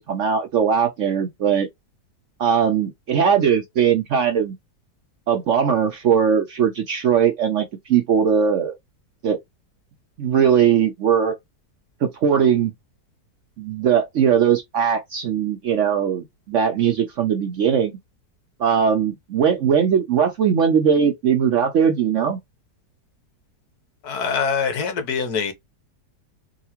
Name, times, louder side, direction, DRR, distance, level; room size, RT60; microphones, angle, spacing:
voice 1, 0.0-1.7 2.4-4.6 5.3-8.8 9.2-9.4 10.2-11.4 12.0-12.7 13.6-17.9 18.6-22.4, right 7 dB, 65° right, 0.8 m, -19 dB
voice 2, 24.0-25.5, left 6 dB, 70° left, 1.4 m, -24 dB
3.8 x 2.4 x 2.8 m
omnidirectional pair, 1.8 m